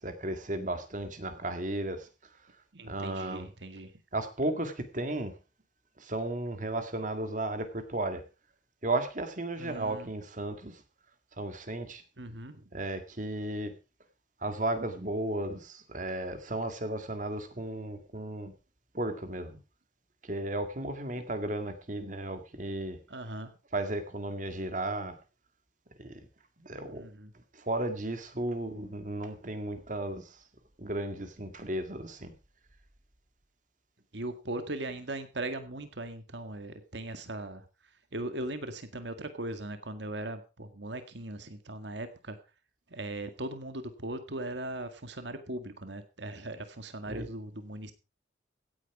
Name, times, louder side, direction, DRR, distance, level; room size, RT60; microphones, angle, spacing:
voice 1, 0.0-2.1 2.8-3.5 4.1-5.3 6.0-8.2 8.8-10.8 11.4-12.0 12.7-13.7 14.4-18.5 18.9-19.6 20.2-23.0 23.7-25.2 26.0-26.2 26.6-27.0 27.5-30.4 30.8-32.3 47.1-47.3, right 1 dB, 45° right, 1.9 m, -34 dB
voice 2, 2.7-3.9 9.6-10.1 12.2-12.6 23.1-23.5 26.9-27.3 34.1-37.6 38.1-42.4 42.9-47.9, right 1 dB, 75° right, 1.9 m, -39 dB
16.5 x 9.6 x 4.7 m
head